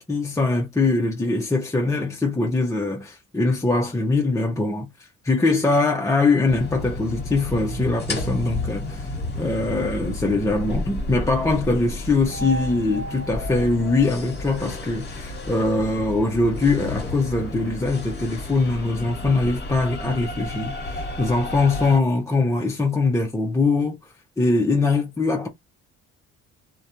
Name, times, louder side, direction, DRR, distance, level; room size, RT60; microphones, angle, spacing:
voice 1, 0.0-4.9 5.2-9.1 9.4-24.0 24.4-25.5, left 3 dB, 10° left, 0.5 m, -22 dB
sound 1, 6.5-22.0, left 2 dB, 35° left, 1.2 m, -32 dB
2.4 x 2.1 x 2.8 m
cardioid pair, 90°, 30 cm